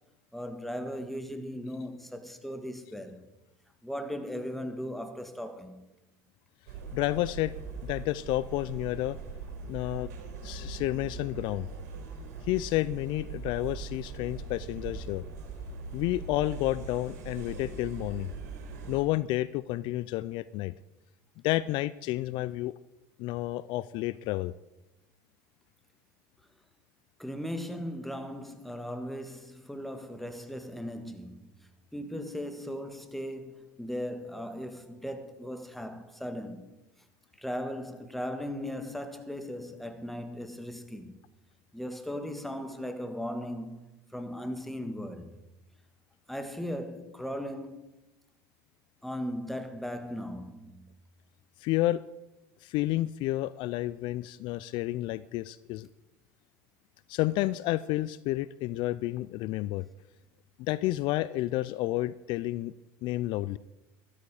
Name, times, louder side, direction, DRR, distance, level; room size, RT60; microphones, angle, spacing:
voice 1, 0.3-3.2 3.8-5.8 27.2-31.5 31.9-36.7 37.4-41.2 41.7-43.8 44.1-45.4 46.3-47.8 49.0-50.9 59.8-59.9, equal, ahead, 1.7 m, -37 dB
sound 1, 6.7-19.0, right 4 dB, 80° right, 4.0 m, -41 dB
voice 2, 6.9-7.5 7.8-9.2 9.7-10.1 10.4-11.7 12.5-15.2 15.9-18.3 18.9-20.7 21.4-22.8 23.2-24.5 51.6-52.0 52.6-55.9 57.1-59.8 60.6-62.7 63.0-63.6, left 16 dB, 60° left, 0.4 m, -30 dB
13.0 x 13.0 x 4.9 m
supercardioid pair, 95°, 9 cm